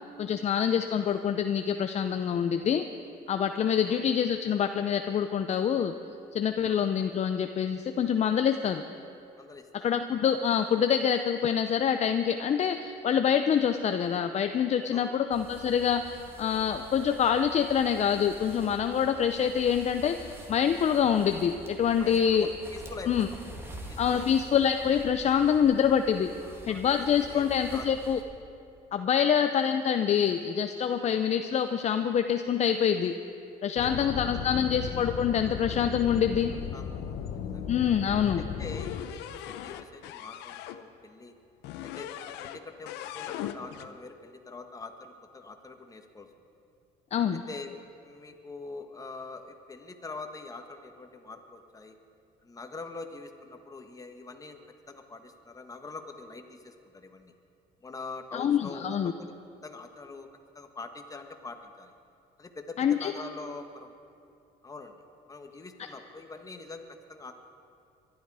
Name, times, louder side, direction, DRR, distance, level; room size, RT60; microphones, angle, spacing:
voice 1, 0.2-2.9 3.3-5.9 6.3-8.8 9.7-22.5 23.1-23.3 24.0-26.3 26.7-28.2 28.9-33.1 33.6-36.5 37.7-38.4 47.1-47.4 58.3-59.1 62.8-63.1, left 8 dB, 40° left, 7 dB, 0.6 m, -26 dB
voice 2, 9.3-10.0 14.9-15.2 22.0-23.4 23.9-24.3 26.2-26.8 27.2-27.8 29.1-29.4 33.8-34.8 36.7-37.7 38.4-41.3 41.8-46.3 47.5-47.7 48.0-52.0 52.4-54.6 54.9-57.3 57.8-59.3 59.6-60.3 60.5-61.9 62.4-64.0 64.6-65.0 65.3-67.3, left 3 dB, 20° left, 5 dB, 1.4 m, -44 dB
sound 1, 15.3-28.2, equal, 15° right, 2.1 m, -46 dB
sound 2, 33.8-39.0, left 8 dB, 65° left, 1.0 m, -36 dB
sound 3, 38.6-40.8 41.6-42.6 42.9-43.9, left 12 dB, 90° left, 0.7 m, -40 dB
22.5 x 12.0 x 4.9 m, 2.6 s
cardioid pair, 110°, 17 cm